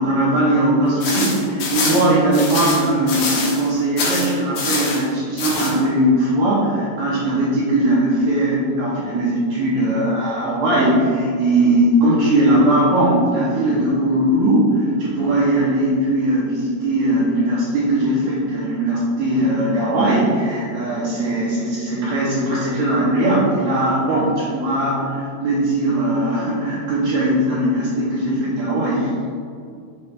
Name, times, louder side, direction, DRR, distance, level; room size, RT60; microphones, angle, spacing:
voice 1, 0.0-29.1, right 1 dB, 70° right, -8 dB, 2.5 m, -19 dB
sound 1, 1.0-3.7 4.0-5.0 5.4-5.7, left 3 dB, 75° left, 2.0 m, -24 dB
7.2 x 4.8 x 3.3 m, 2.3 s
omnidirectional pair, 5.4 m